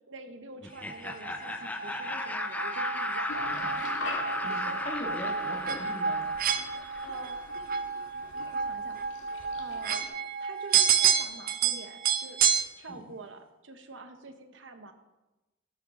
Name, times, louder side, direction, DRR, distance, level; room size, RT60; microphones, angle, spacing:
voice 1, 0.1-3.5 4.3-4.9 5.7-5.9 7.0-7.4 8.1-9.0 9.3-10.1 10.4-12.4 12.7-14.9, right 3 dB, 90° right, 7 dB, 1.1 m, -47 dB
Laughter, 0.6-7.4, left 2 dB, 10° left, 0.5 m, -36 dB
sound 1, 0.9-12.7, right 7 dB, 50° right, 0.7 m, -30 dB
sound 2, 3.3-10.1, left 3 dB, 80° left, 1.9 m, -44 dB
voice 2, 4.4-6.3 12.9-13.1, left 1 dB, 35° left, 0 dB, 2.0 m, -40 dB
12.0 x 8.3 x 3.8 m, 1.1 s
head